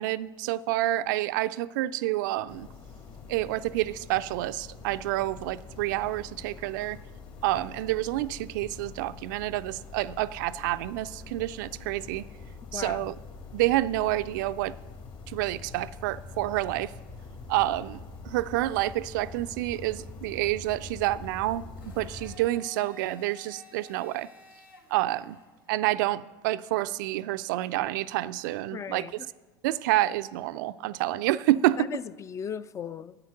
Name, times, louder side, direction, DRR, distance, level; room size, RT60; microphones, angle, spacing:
voice 1, 0.0-2.7 3.3-7.0 7.4-12.3 12.7-13.1 13.5-14.7 15.3-16.9 17.5-24.3 24.9-25.4 25.7-29.1 29.6-31.9, right 16 dB, 60° right, 0.4 m, -28 dB
sound 1, 2.5-22.4, left 4 dB, 45° left, 2.3 m, -45 dB
voice 2, 12.7-13.1 28.7-29.1 31.8-33.2, left 7 dB, 25° left, 0.4 m, -37 dB
Domestic sounds home sounds, 21.8-25.8, left 2 dB, 80° left, 1.5 m, -52 dB
9.8 x 8.7 x 6.5 m
figure-of-eight pair, 75°, 11 cm